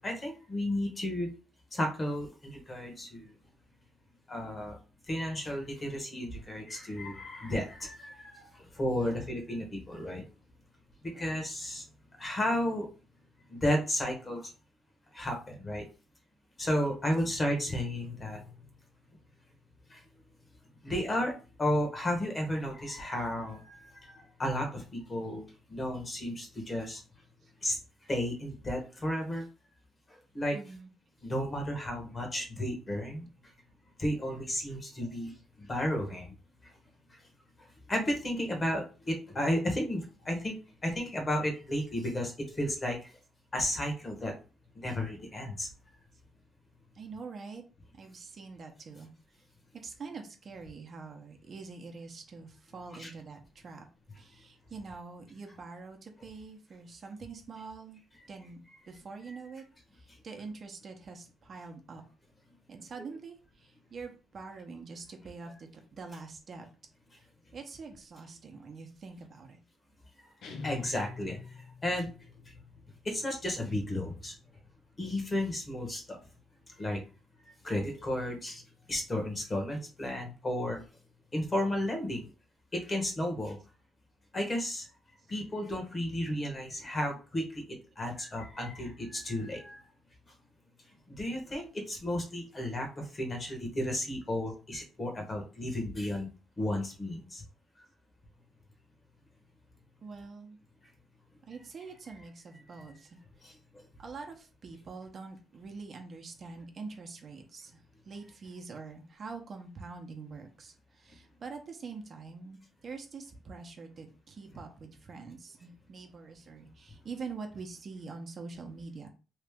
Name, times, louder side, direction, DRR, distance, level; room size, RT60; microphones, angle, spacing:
voice 1, 0.0-1.3 1.7-3.3 4.3-4.8 5.1-10.2 11.0-11.8 12.2-12.9 13.5-14.5 15.1-15.8 16.6-18.5 19.9-20.0 20.8-21.3 21.6-27.0 27.6-27.8 28.1-29.5 30.1-30.6 31.2-33.3 34.0-36.3 36.6-36.7 37.9-43.1 43.5-44.3 44.7-45.7 53.0-53.1 59.3-59.4 63.0-63.1 70.6-72.1 72.4-72.5 73.0-74.3 75.0-76.2 76.8-77.0 77.6-78.6 78.9-80.8 81.3-82.3 82.7-83.6 84.3-84.9 85.3-89.8 91.1-96.3 96.6-97.4 102.8-102.9 103.4-103.8, left 1 dB, 30° left, 2 dB, 1.3 m, -33 dB
voice 2, 8.9-9.3 11.1-11.4 16.7-17.0 30.5-30.9 46.9-47.6 47.9-49.1 49.8-53.9 54.2-58.0 58.3-58.6 58.9-59.6 59.9-62.0 62.7-66.6 67.5-69.6 100.0-100.6 101.5-103.2 103.4-103.5 104.0-107.8 108.1-119.1, right 4 dB, 50° right, 3 dB, 0.8 m, -45 dB
sound 1, 70.4-72.1, left 4 dB, 75° left, 0.7 m, -43 dB
3.1 x 2.4 x 3.6 m, 0.34 s
cardioid pair, 90°, 0 cm